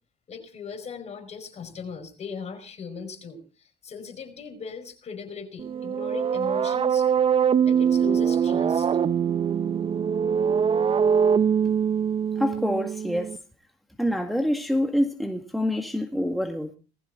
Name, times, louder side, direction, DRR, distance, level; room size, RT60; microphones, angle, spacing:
voice 1, 0.3-7.1 7.7-8.9, left 6 dB, 40° left, 5.1 m, -38 dB
sound 1, 5.6-13.4, right 7 dB, 35° right, 0.7 m, -23 dB
voice 2, 12.4-13.4 14.0-16.7, equal, ahead, 1.8 m, -26 dB
20.5 x 14.5 x 3.8 m
cardioid pair, 110°, 17 cm